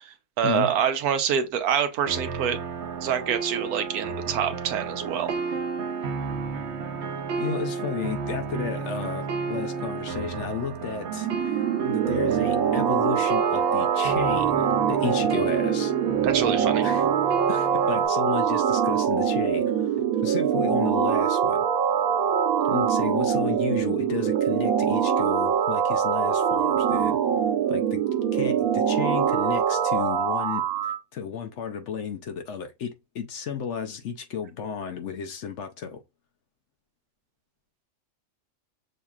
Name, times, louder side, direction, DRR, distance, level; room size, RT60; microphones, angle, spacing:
voice 1, 0.0-2.6 3.0-5.4 16.2-16.9, right 8 dB, 90° right, 1.2 m, -26 dB
sound 1, 2.1-18.1, right 4 dB, 55° right, 1.0 m, -32 dB
voice 2, 7.4-15.9 16.8-17.1 17.5-19.8 20.2-21.7 22.7-27.2 27.7-28.0 28.3-36.0, left 7 dB, 65° left, 0.8 m, -33 dB
sound 2, 11.1-31.0, right 8 dB, 70° right, 1.2 m, -24 dB
6.4 x 2.8 x 2.3 m
omnidirectional pair, 1.6 m